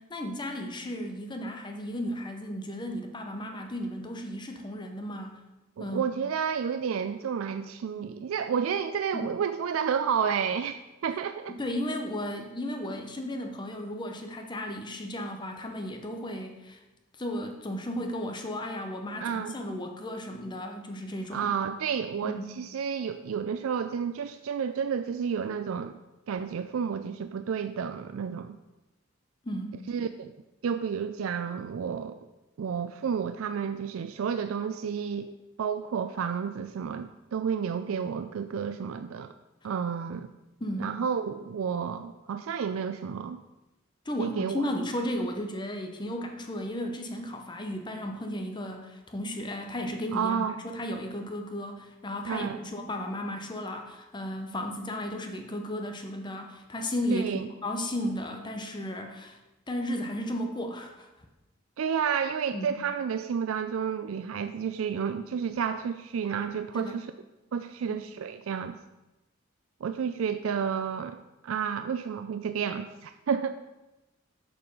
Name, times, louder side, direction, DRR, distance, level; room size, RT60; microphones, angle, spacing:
voice 1, 0.0-5.3 5.8-6.1 9.1-9.3 11.5-16.8 17.2-21.5 22.2-22.5 29.4-29.8 40.6-41.0 44.1-59.4 59.7-61.1 62.5-62.8 66.7-67.0 67.9-68.1, left 1 dB, 20° left, 4 dB, 0.7 m, -34 dB
voice 2, 5.8-11.6 19.2-19.6 21.3-25.9 26.3-28.6 29.9-30.3 30.6-32.2 32.6-39.3 39.6-40.3 40.8-43.4 44.2-44.6 50.1-50.6 52.3-52.6 57.1-57.5 61.8-67.1 67.5-68.8 69.8-73.5, right 7 dB, 90° right, 10 dB, 0.4 m, -31 dB
7.1 x 6.8 x 5.3 m, 1.0 s
head